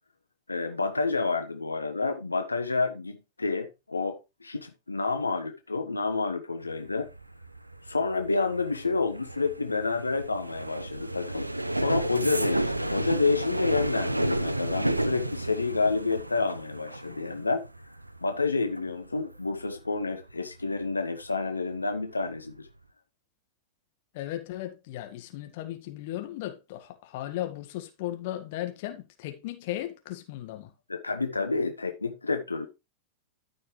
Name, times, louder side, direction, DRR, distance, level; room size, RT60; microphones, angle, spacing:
voice 1, 0.5-7.1 7.8-11.5 11.7-17.6 18.2-22.7 30.9-32.7, left 3 dB, 80° left, 1.2 m, -29 dB
sound 1, 6.6-21.3 21.6-22.0 22.3-22.7, right 1 dB, 85° right, 0.6 m, -32 dB
voice 2, 24.1-30.7, left 14 dB, 50° left, 1.8 m, -36 dB
13.5 x 6.1 x 3.3 m
figure-of-eight pair, 90°, 0 cm